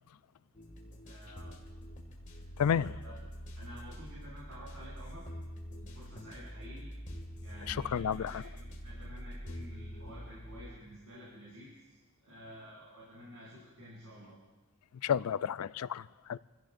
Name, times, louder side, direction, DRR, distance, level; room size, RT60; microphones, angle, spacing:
sound 1, 0.5-10.7, equal, 35° left, 2.2 m, -45 dB
voice 1, 1.0-1.5 2.3-3.2 3.5-5.3 5.6-6.9 7.4-14.3, equal, 75° right, 6.1 m, -51 dB
voice 2, 2.6-3.0 7.7-8.4 15.0-16.4, left 8 dB, 90° left, 0.4 m, -31 dB
28.0 x 16.5 x 2.6 m
head